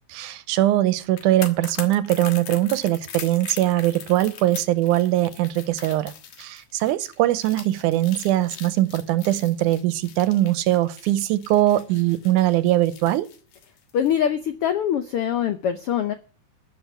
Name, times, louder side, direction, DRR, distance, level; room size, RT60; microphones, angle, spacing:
voice 1, 0.1-6.1 6.4-13.3, right 14 dB, 80° right, 2.2 m, -21 dB
sound 1, 1.0-14.2 14.5-14.7, left 8 dB, 70° left, 2.8 m, -41 dB
voice 2, 13.9-16.1, left 9 dB, 90° left, 1.2 m, -23 dB
13.5 x 6.4 x 9.4 m
omnidirectional pair, 3.7 m